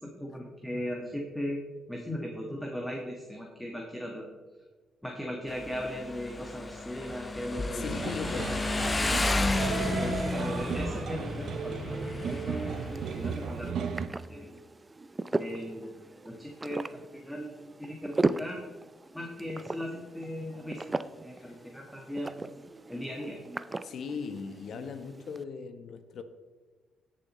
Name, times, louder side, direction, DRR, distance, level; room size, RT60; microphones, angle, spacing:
voice 1, 0.0-1.6 1.9-4.3 5.0-7.9 8.4-8.5 9.4-14.5 15.4-16.0 16.2-18.7 19.1-20.9 21.2-22.6 22.9-23.4, equal, 5° left, 1.6 m, -38 dB
Motorcycle, 5.5-13.7, left 2 dB, 25° left, 0.7 m, -32 dB
voice 2, 7.7-8.7 21.4-21.6 23.8-26.2, left 5 dB, 65° left, 0.9 m, -38 dB
sound 1, 7.9-14.1, right 7 dB, 65° right, 0.7 m, -35 dB
sound 2, 12.5-25.4, right 2 dB, 20° right, 0.4 m, -37 dB
17.5 x 7.1 x 3.1 m
cardioid pair, 90°, 0 cm